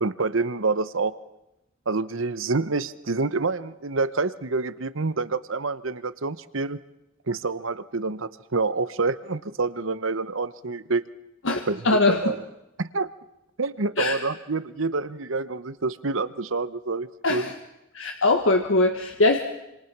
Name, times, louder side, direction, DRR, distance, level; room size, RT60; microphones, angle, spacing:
voice 1, 0.0-1.1 1.9-6.8 7.3-11.0 11.7-12.4 12.8-13.1 13.6-17.5, right 3 dB, 75° right, 14 dB, 1.0 m, -27 dB
voice 2, 11.4-12.2 14.0-14.2 17.2-17.5 17.9-19.4, left 2 dB, 75° left, 4 dB, 1.6 m, -21 dB
27.0 x 26.5 x 6.1 m, 0.90 s
head